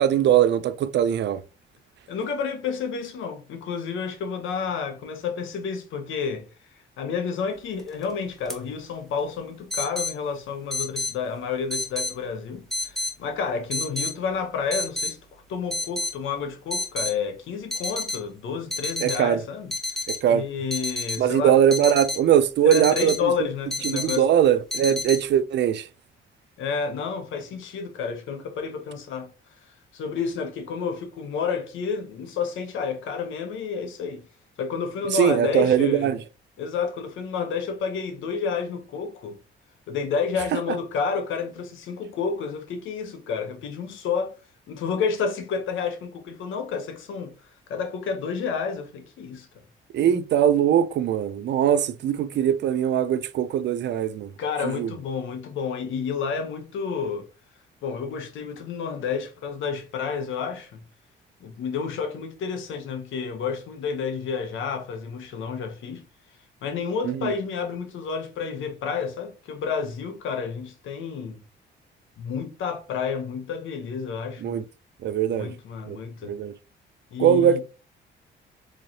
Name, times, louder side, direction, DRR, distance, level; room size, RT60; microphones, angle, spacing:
voice 1, 0.0-1.4 19.0-19.4 20.1-20.4 21.2-23.3 23.9-25.9 35.1-36.2 49.9-54.3 54.6-54.9 67.0-67.3 74.4-74.6 75.0-75.5 75.9-76.0 76.2-76.5 77.2-77.6, right 9 dB, 60° right, 0.4 m, -21 dB
voice 2, 2.1-6.5 7.0-19.7 20.3-21.6 22.6-24.3 26.6-29.3 29.9-34.2 34.6-36.1 36.6-39.4 39.9-44.3 44.7-47.3 47.7-49.5 50.0-50.2 52.1-52.4 54.4-57.3 57.8-60.8 61.4-66.0 66.6-71.4 72.2-74.6 75.3-76.3 77.1-77.6, left 6 dB, 80° left, 0.9 m, -30 dB
sound 1, 7.8-8.0 8.5-8.6 9.7-10.1 10.7-11.1 11.7-12.1 12.7-13.1 13.7-14.1 14.7-15.1 15.7-16.1 16.7-17.1 17.7-18.2 18.7-19.2 19.7-20.2 20.7-21.2 21.7-22.2 22.7-23.2 23.7-24.2 24.7-25.2, left 1 dB, ahead, 1.0 m, -29 dB
3.8 x 3.1 x 2.8 m
cardioid pair, 90°, 20 cm